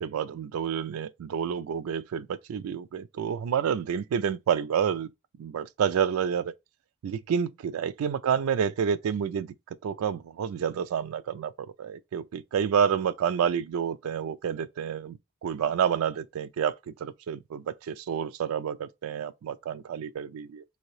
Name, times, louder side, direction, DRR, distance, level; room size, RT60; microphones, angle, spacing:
voice 1, 0.0-5.1 5.4-6.5 7.0-9.5 9.8-11.5 11.8-15.2 15.4-16.7 17.0-20.6, right 7 dB, 85° right, 0.3 m, -29 dB
2.8 x 2.6 x 3.1 m
head